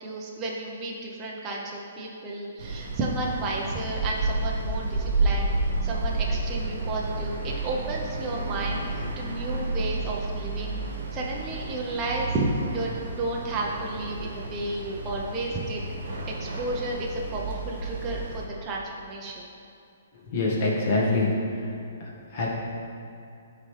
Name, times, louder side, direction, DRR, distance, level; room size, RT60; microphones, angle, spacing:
voice 1, 0.0-5.5 5.8-10.8 11.1-12.5 12.7-15.8 16.3-19.4, right 2 dB, 25° right, -3 dB, 0.7 m, -32 dB
sound 1, 2.6-18.5, right 2 dB, 65° right, 1.2 m, -31 dB
voice 2, 20.2-21.7 22.3-22.5, left 2 dB, 45° left, -4 dB, 1.7 m, -25 dB
11.5 x 3.9 x 3.3 m, 2.6 s
hypercardioid pair, 145°, 0 cm